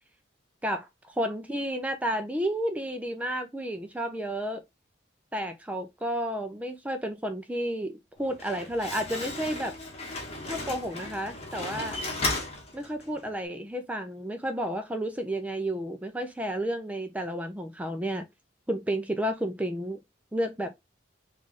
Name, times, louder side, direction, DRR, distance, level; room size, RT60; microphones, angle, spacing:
voice 1, 0.6-4.6 5.3-9.8 10.4-12.0 12.7-18.2 18.7-20.0 20.3-20.7, right 1 dB, 10° right, 0.4 m, -31 dB
Slam, 8.2-13.3, left 2 dB, 35° left, 1.1 m, -35 dB
3.7 x 2.4 x 3.9 m
head